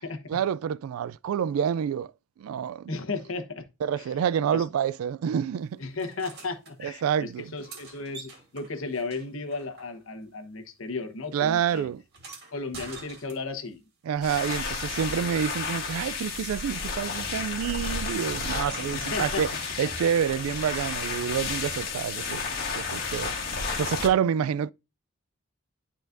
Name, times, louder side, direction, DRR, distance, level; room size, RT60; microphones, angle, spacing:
voice 1, 0.3-2.1 2.4-2.9 3.8-5.8 6.8-7.5 11.3-12.0 14.0-22.5 22.7-23.3 23.8-24.7, right 8 dB, 85° right, 0.3 m, -28 dB
voice 2, 2.9-3.6 4.5-4.6 5.8-11.9 12.5-13.8 18.9-19.5, left 3 dB, 75° left, 1.1 m, -34 dB
sound 1, 6.0-6.7 7.4-10.3 10.6-13.8 15.2-16.5 18.5-18.6, right 4 dB, 50° right, 2.4 m, -48 dB
sound 2, 14.2-24.1, left 4 dB, 45° left, 1.8 m, -32 dB
11.5 x 4.2 x 2.6 m
head